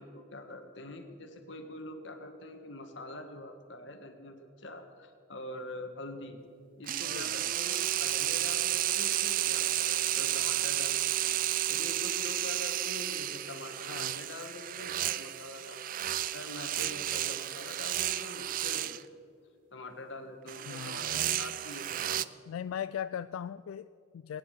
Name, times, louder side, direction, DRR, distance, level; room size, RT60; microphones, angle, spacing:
voice 1, 0.0-6.4 6.8-11.3 11.7-19.2 19.7-22.2, left 2 dB, 60° left, 6 dB, 1.6 m, -45 dB
sound 1, 6.9-19.0 20.5-22.2, right 13 dB, 40° right, 0.3 m, -32 dB
voice 2, 7.1-7.5 13.9-14.2 20.7-21.0 22.5-24.4, left 9 dB, 85° left, 14 dB, 0.3 m, -39 dB
20.0 x 9.8 x 6.7 m, 2.4 s
head